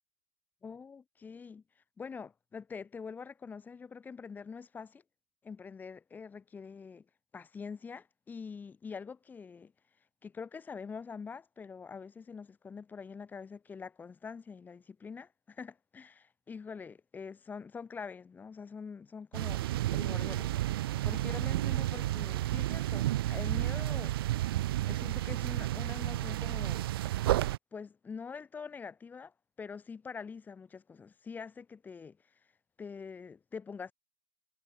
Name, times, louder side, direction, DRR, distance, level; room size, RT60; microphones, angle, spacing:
voice 1, 0.6-1.6 2.0-5.0 5.4-7.0 7.3-9.7 10.2-19.6 19.9-20.5 20.8-24.1 24.9-26.9 27.7-32.2 32.8-33.9, left 5 dB, 10° left, 6.8 m, -45 dB
sound 1, 19.3-27.6, right 15 dB, 45° right, 3.6 m, -31 dB
hypercardioid pair, 135°, 16 cm